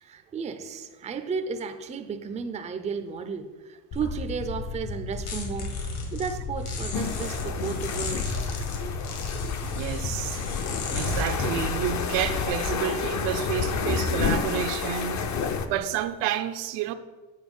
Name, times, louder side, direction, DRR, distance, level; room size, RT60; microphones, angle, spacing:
voice 1, 0.0-8.3 9.6-9.7, right 5 dB, 15° right, 0.4 m, -34 dB
sound 1, 3.9-12.5, left 3 dB, 65° left, 1.8 m, -33 dB
sound 2, 6.9-15.7, left 6 dB, 40° left, 0.7 m, -30 dB
voice 2, 9.6-10.4 10.9-15.3 15.7-16.9, right 10 dB, 75° right, 0.7 m, -30 dB
8.0 x 4.5 x 5.3 m
supercardioid pair, 110°, 43 cm